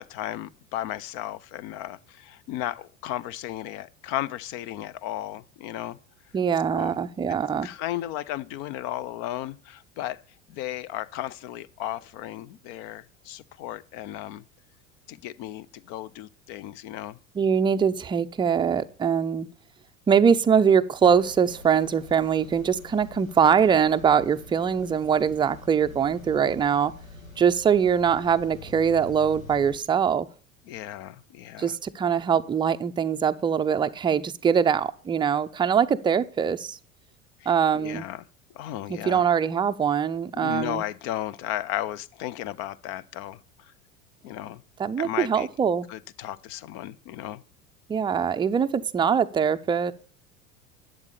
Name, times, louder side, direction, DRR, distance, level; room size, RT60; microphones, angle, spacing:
voice 1, 0.0-6.0 6.7-7.0 7.3-7.4 7.6-10.2 10.5-14.4 15.1-17.2 30.7-31.8 37.4-38.3 38.5-39.2 40.4-43.4 44.2-44.6 45.0-45.5 45.9-47.4, left 13 dB, 40° left, 0.6 m, -34 dB
voice 2, 6.3-7.7 17.4-19.5 20.1-26.9 27.4-30.3 31.6-36.8 37.5-38.0 38.9-40.8 44.8-45.9 47.9-49.9, right 7 dB, 10° right, 0.5 m, -23 dB
sound 1, 21.0-29.8, left 3 dB, 85° left, 1.9 m, -46 dB
11.5 x 7.8 x 6.7 m
figure-of-eight pair, 75°, 39 cm